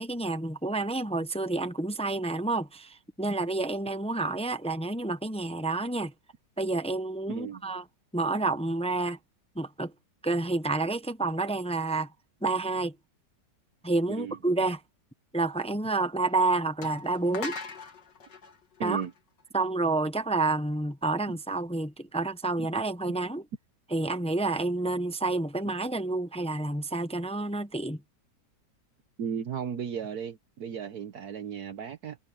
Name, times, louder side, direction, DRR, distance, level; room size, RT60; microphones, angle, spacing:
voice 1, 0.0-6.1 6.6-7.8 8.1-9.2 9.6-9.9 10.2-12.1 12.4-12.9 13.8-14.8 15.3-17.6 18.8-19.0 19.5-23.4 23.9-28.0, right 2 dB, 5° left, 0.5 m, -29 dB
voice 2, 7.3-7.6 14.1-14.4 18.8-19.1 21.3-21.4 22.6-22.7 29.2-32.2, right 7 dB, 65° right, 1.4 m, -35 dB
sound 1, 16.2-16.3 16.8-19.6, left 4 dB, 80° left, 2.9 m, -41 dB
omnidirectional pair, 1.9 m